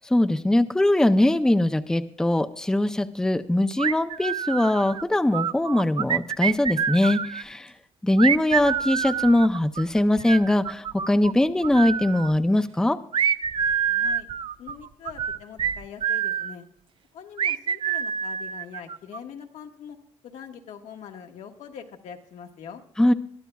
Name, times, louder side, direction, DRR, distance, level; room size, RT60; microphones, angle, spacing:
voice 1, 0.0-7.7 8.0-13.0 23.0-23.1, left 1 dB, 5° left, 9 dB, 0.5 m, -21 dB
sound 1, 3.8-5.0 5.3-7.4 8.2-11.3 11.6-12.4 13.1-16.5 17.4-19.2, right 8 dB, 45° right, 0.5 m, -27 dB
voice 2, 13.9-14.3 14.6-16.6 17.1-20.0 20.2-22.8, left 7 dB, 85° left, 3 dB, 1.4 m, -43 dB
21.5 x 12.0 x 2.3 m, 0.66 s
cardioid pair, 120°, 12 cm